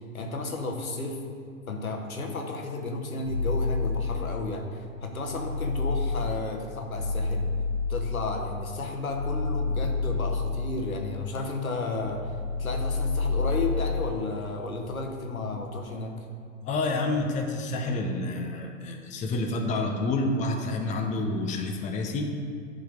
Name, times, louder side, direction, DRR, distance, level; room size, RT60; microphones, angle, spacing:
voice 1, 0.1-1.2 1.7-7.5 7.9-16.1, left 3 dB, 90° left, 2 dB, 1.2 m, -33 dB
sound 1, 3.2-4.7 5.1-11.6 11.9-14.2, left 3 dB, 40° left, 2.0 m, -30 dB
voice 2, 16.6-22.3, left 2 dB, 20° left, 2 dB, 0.7 m, -28 dB
10.5 x 4.0 x 5.1 m, 2.4 s
hypercardioid pair, 105°, 41 cm